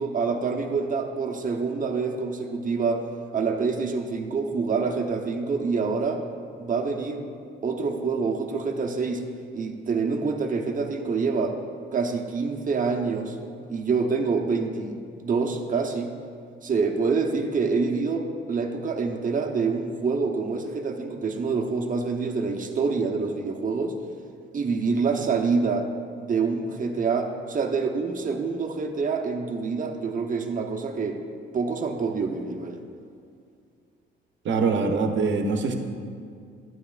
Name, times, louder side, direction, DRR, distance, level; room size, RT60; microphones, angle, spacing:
voice 1, 0.0-3.1 3.3-6.2 6.6-7.2 7.6-9.2 9.5-11.6 11.9-13.4 13.7-16.1 16.6-23.9 24.5-25.9 26.2-31.2 31.5-32.8, right 4 dB, 40° right, 3 dB, 0.8 m, -26 dB
voice 2, 34.4-35.7, right 4 dB, 70° right, 4 dB, 0.9 m, -23 dB
11.0 x 8.7 x 2.4 m, 2.3 s
cardioid pair, 90°, 20 cm